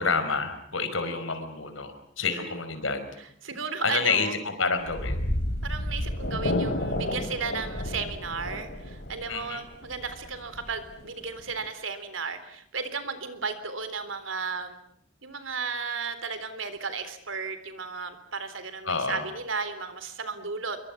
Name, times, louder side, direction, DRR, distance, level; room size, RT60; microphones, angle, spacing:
voice 1, 0.0-3.1 3.8-5.2 9.3-9.6 18.8-19.3, left 4 dB, 85° left, 9 dB, 5.1 m, -28 dB
voice 2, 3.4-4.3 5.6-14.8 15.2-20.8, right 5 dB, 80° right, 11 dB, 3.8 m, -34 dB
sound 1, 4.8-11.6, left 1 dB, 60° left, 3.8 m, -31 dB
27.0 x 23.5 x 7.4 m, 0.68 s
head